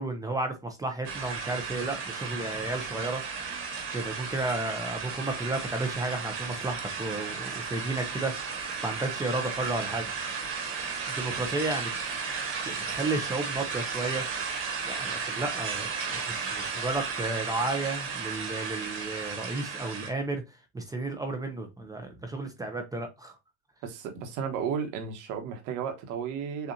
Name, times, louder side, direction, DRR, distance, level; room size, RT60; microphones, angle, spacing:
voice 1, 0.0-3.2 3.9-10.1 11.2-11.9 12.6-14.2 14.8-23.4, right 2 dB, 10° right, 0.6 m, -33 dB
sound 1, 1.0-20.1, right 5 dB, 35° right, 1.4 m, -34 dB
voice 2, 23.8-26.7, right 7 dB, 55° right, 1.3 m, -33 dB
7.0 x 2.5 x 2.7 m
cardioid pair, 145°, 36 cm